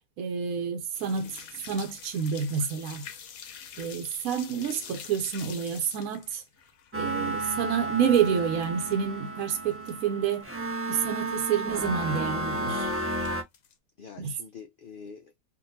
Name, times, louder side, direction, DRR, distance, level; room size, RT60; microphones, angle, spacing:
voice 1, 0.2-1.4 1.7-3.0 3.8-6.4 6.9-10.5 10.9-12.9 14.2-14.3, right 7 dB, 80° right, 1.1 m, -28 dB
sound 1, 0.9-8.9 9.2-10.0 10.3-10.4 10.9-11.0 11.1-11.4 12.2-12.7 13.1-13.7, left 7 dB, 80° left, 1.1 m, -46 dB
voice 2, 1.1-1.4 4.5-4.9 14.0-15.3, left 6 dB, 60° left, 0.5 m, -47 dB
sound 2, 6.9-13.4, right 1 dB, 15° right, 0.4 m, -32 dB
3.7 x 2.5 x 2.6 m
omnidirectional pair, 1.5 m